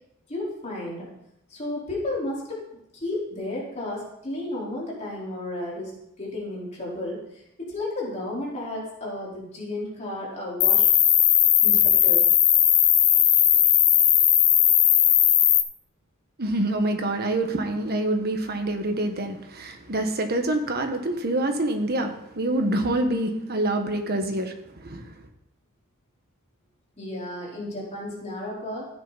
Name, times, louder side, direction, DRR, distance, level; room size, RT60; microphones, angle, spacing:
voice 1, 0.3-1.1 1.5-2.6 2.9-10.9 11.6-12.3 27.0-28.9, left 1 dB, 30° left, -5 dB, 4.5 m, -33 dB
Cricket, 10.6-15.6, left 10 dB, 75° left, 1.5 m, -18 dB
voice 2, 16.4-25.1, right 1 dB, 45° right, 5 dB, 1.6 m, -26 dB
15.0 x 10.0 x 4.2 m, 0.80 s
head